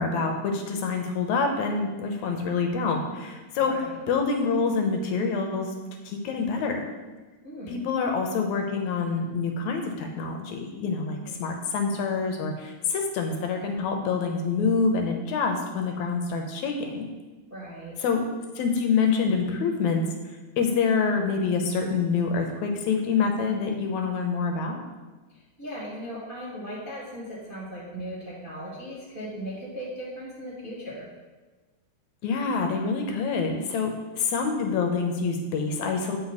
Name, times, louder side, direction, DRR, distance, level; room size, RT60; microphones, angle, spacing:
voice 1, 0.0-5.7 6.1-6.8 7.7-17.1 18.0-18.3 18.6-24.8 32.2-36.2, left 5 dB, 75° left, 3 dB, 1.9 m, -26 dB
voice 2, 3.6-4.0 7.4-7.8 11.2-11.5 17.5-18.0 25.3-31.1, equal, 30° right, -8 dB, 0.9 m, -38 dB
8.2 x 5.3 x 4.1 m, 1.2 s
omnidirectional pair, 3.5 m